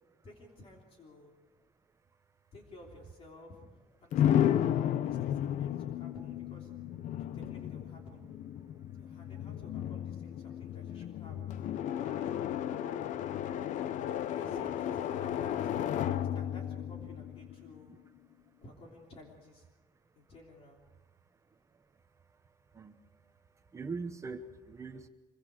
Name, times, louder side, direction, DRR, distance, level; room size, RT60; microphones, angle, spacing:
voice 1, 0.2-1.3 2.5-3.6 4.0-4.6 5.0-6.7 7.3-8.2 8.9-13.1 14.2-15.7 16.0-17.9 18.6-19.7 20.1-20.8, left 2 dB, 40° left, 0 dB, 3.3 m, -53 dB
sound 1, 4.1-17.9, left 10 dB, 55° left, 0.6 m, -33 dB
voice 2, 23.7-25.1, right 4 dB, 20° right, 7 dB, 1.0 m, -41 dB
25.0 x 23.5 x 5.0 m, 1.2 s
cardioid pair, 180°, 15 cm